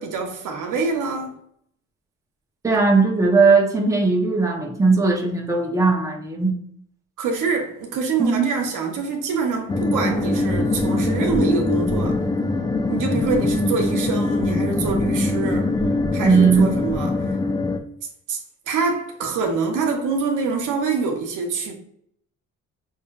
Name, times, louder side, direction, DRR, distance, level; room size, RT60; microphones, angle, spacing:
voice 1, 0.0-1.3 7.2-12.3 12.9-15.7 16.1-17.3 18.3-18.4 18.7-21.7, right 4 dB, 85° right, 0.9 m, -25 dB
voice 2, 2.6-6.6 8.2-8.5 16.2-16.7, right 4 dB, 10° right, 0.8 m, -18 dB
sound 1, 9.7-17.8, left 2 dB, 15° left, 0.4 m, -22 dB
5.4 x 2.6 x 2.3 m
cardioid pair, 90°, 30 cm